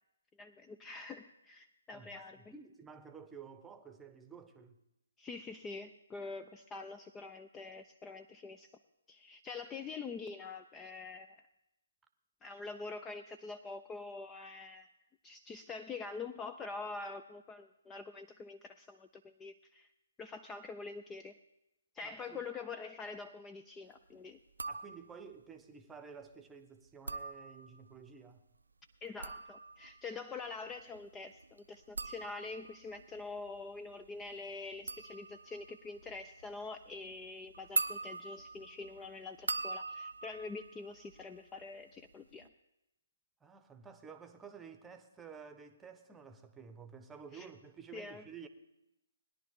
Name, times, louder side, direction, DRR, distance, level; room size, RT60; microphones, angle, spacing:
voice 1, 0.4-2.4 5.2-8.7 9.1-11.4 12.4-14.9 15.2-19.9 20.2-21.3 21.9-24.4 29.0-42.5 47.3-47.5 47.9-48.2, left 4 dB, 15° left, 0.4 m, -45 dB
voice 2, 1.9-4.8 22.0-22.4 24.7-28.5 43.4-48.5, right 6 dB, 10° right, 0.9 m, -52 dB
sound 1, 24.5-25.3 26.9-28.0 28.9-41.7 41.9-42.5, right 3 dB, 80° right, 0.5 m, -42 dB
20.0 x 10.5 x 3.6 m
figure-of-eight pair, 135°, 0 cm